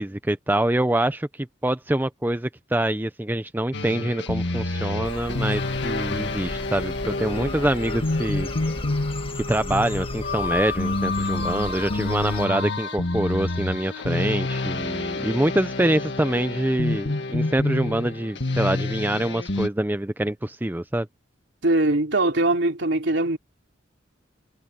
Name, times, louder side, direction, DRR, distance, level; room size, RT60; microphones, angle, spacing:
voice 1, 0.0-8.5 9.3-21.1, right 1 dB, 10° right, 0.6 m, -25 dB
sound 1, 3.7-19.7, left 2 dB, 65° left, 2.0 m, -28 dB
sound 2, 5.0-12.5, left 2 dB, 30° left, 1.8 m, -36 dB
voice 2, 21.6-23.4, right 2 dB, 65° right, 3.3 m, -21 dB
head